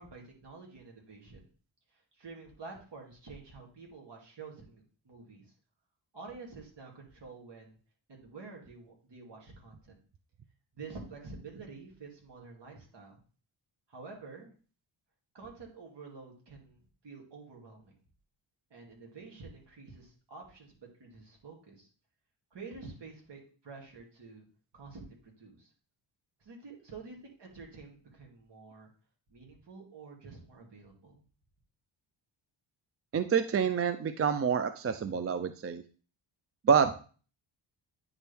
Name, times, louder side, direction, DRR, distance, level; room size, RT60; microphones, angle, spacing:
voice 1, 0.0-1.5 1.9-5.5 6.1-7.8 8.1-10.0 10.7-13.2 13.9-14.5 15.3-17.9 18.7-21.9 22.5-24.5 24.7-25.7 26.4-28.9 29.3-31.2, right 4 dB, 55° right, 0 dB, 2.6 m, -49 dB
voice 2, 33.1-35.8 36.6-36.9, right 6 dB, 30° right, 10 dB, 0.4 m, -27 dB
9.5 x 4.4 x 3.5 m, 0.39 s
cardioid pair, 95°, 49 cm